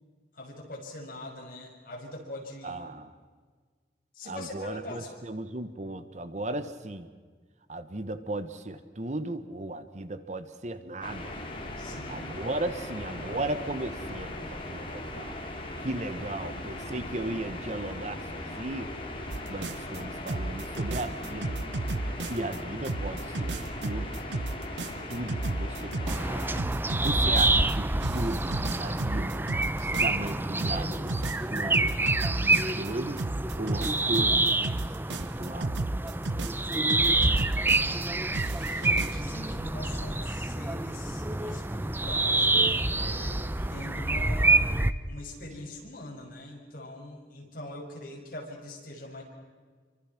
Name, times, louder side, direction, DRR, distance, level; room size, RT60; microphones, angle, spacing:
voice 1, 0.3-2.9 4.1-5.2 11.8-12.3 36.7-37.5 38.8-43.4 43.7-44.7 45.1-49.2, left 1 dB, 50° left, -1 dB, 6.5 m, -42 dB
voice 2, 2.6-3.2 4.3-7.1 7.7-11.4 12.1-15.4 15.8-18.9 19.5-21.6 22.3-24.2 24.8-26.5 27.0-29.5 29.7-31.9 32.4-33.2 33.6-34.5 35.1-35.8, right 2 dB, 40° right, 11 dB, 1.2 m, -36 dB
sound 1, 11.0-26.6, left 1 dB, 30° left, 3.8 m, -38 dB
sound 2, 19.3-20.0 20.3-22.6 22.8-27.7 28.0-30.3 30.6-32.9 33.2-38.1 38.3-39.2, right 2 dB, 85° right, 0.9 m, -33 dB
sound 3, 26.1-44.9, right 2 dB, 10° right, 0.7 m, -27 dB
28.0 x 25.0 x 6.0 m, 1.5 s
head